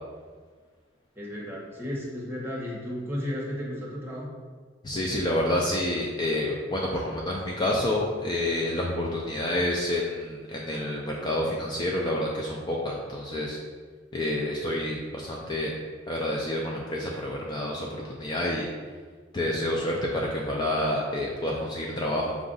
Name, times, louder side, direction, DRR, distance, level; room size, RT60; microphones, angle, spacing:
voice 1, 1.1-4.3, left 1 dB, 15° right, -5 dB, 0.9 m, -34 dB
voice 2, 4.8-13.6 14.1-15.7 16.1-18.7 19.3-22.4, left 1 dB, 25° left, -2 dB, 0.4 m, -28 dB
4.7 x 2.5 x 3.8 m, 1.5 s
head